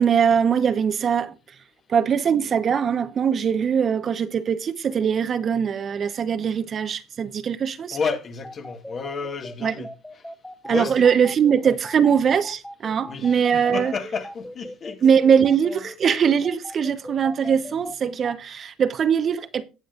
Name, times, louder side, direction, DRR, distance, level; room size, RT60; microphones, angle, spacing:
voice 1, 0.0-1.3 1.9-8.0 9.6-9.9 10.6-13.9 15.0-19.7, right 7 dB, 40° right, 1.0 m, -21 dB
voice 2, 7.9-9.9 10.7-11.0 13.1-15.0 15.7-15.8, left 5 dB, 40° left, 2.1 m, -31 dB
sound 1, 8.4-18.3, left 1 dB, 5° left, 1.1 m, -38 dB
18.0 x 7.6 x 2.5 m
supercardioid pair, 100°, 0 cm